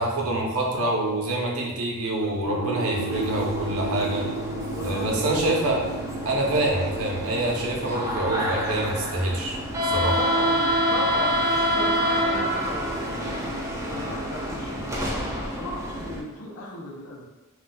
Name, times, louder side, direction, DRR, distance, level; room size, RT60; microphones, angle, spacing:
voice 1, 0.0-4.3 4.8-5.8 6.2-10.2, right 1 dB, 85° right, -1 dB, 0.7 m, -26 dB
sound 1, 2.4-16.1, right 2 dB, 20° left, 0.8 m, -37 dB
sound 2, 3.1-16.2, equal, 15° right, 0.3 m, -28 dB
voice 2, 4.7-5.8 10.2-17.2, left 1 dB, 85° left, -4 dB, 0.6 m, -36 dB
3.9 x 2.2 x 2.2 m, 1.1 s
head